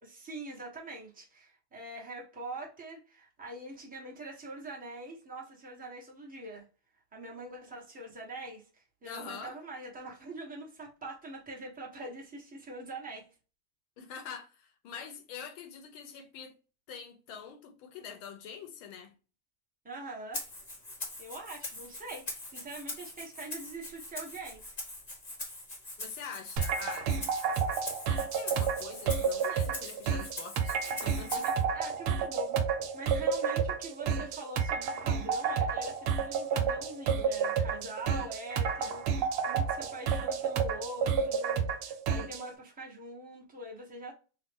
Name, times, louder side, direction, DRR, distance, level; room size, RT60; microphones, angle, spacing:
voice 1, 0.0-6.6 7.1-13.2 19.8-20.4 21.2-24.8 31.4-44.1, right 2 dB, 5° right, 0.8 m, -44 dB
voice 2, 9.0-9.6 14.0-16.6 16.9-19.1 26.0-27.1 28.1-31.5, left 6 dB, 75° left, 1.6 m, -45 dB
Rattle (instrument), 20.3-31.6, left 1 dB, 30° left, 0.8 m, -42 dB
sound 1, 26.6-42.4, right 6 dB, 80° right, 1.5 m, -30 dB
4.0 x 2.4 x 3.6 m
omnidirectional pair, 2.3 m